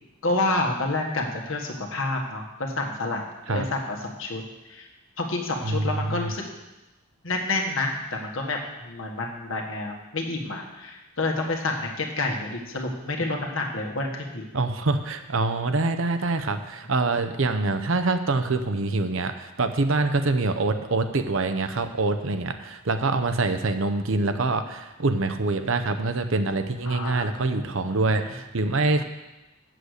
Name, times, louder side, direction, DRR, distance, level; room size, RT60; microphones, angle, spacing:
voice 1, 0.2-4.4 4.7-4.9 5.2-6.5 7.2-14.4 26.9-28.0, left 2 dB, 65° left, 1 dB, 1.5 m, -29 dB
voice 2, 5.6-6.3 14.5-29.0, right 3 dB, 65° right, 8 dB, 0.8 m, -25 dB
8.1 x 7.7 x 6.5 m, 1.0 s
head